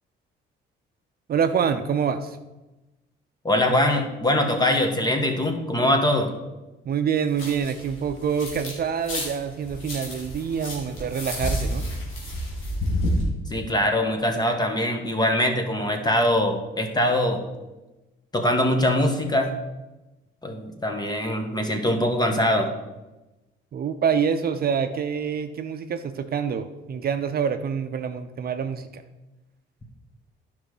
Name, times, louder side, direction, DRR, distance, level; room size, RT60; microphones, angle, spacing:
voice 1, 1.3-2.4 6.8-11.9 23.7-29.0, right 7 dB, 50° right, 8 dB, 0.6 m, -26 dB
voice 2, 3.4-6.3 13.5-17.4 18.3-19.5 20.4-22.7, left 1 dB, 20° left, 4 dB, 1.5 m, -22 dB
sound 1, 7.3-8.7 9.0-13.2, equal, 85° left, 2.8 m, -30 dB
10.5 x 5.5 x 4.9 m, 1.1 s
cardioid pair, 90°, 20 cm